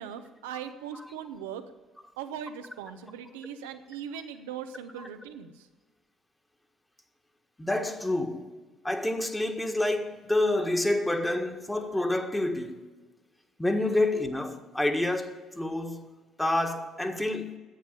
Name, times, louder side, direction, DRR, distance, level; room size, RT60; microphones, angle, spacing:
voice 1, 0.0-1.6 2.2-5.7, right 8 dB, 85° right, 0.9 m, -39 dB
voice 2, 7.6-8.4 8.8-12.8 13.6-16.1 16.4-17.6, left 1 dB, 10° left, 1.6 m, -28 dB
10.5 x 8.4 x 9.9 m
hypercardioid pair, 55°, 0 cm